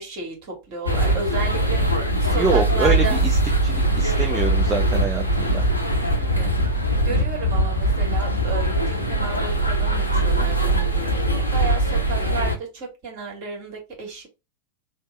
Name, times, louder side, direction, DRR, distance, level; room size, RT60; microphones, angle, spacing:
voice 1, 0.0-1.8 2.2-3.2 6.2-14.3, right 4 dB, 40° right, 1.7 m, -33 dB
sound 1, 0.9-12.6, right 1 dB, 90° left, 0.6 m, -21 dB
voice 2, 2.3-3.0 3.6-5.6, right 5 dB, 20° right, 0.5 m, -25 dB
3.4 x 2.0 x 4.1 m
figure-of-eight pair, 90°, 0 cm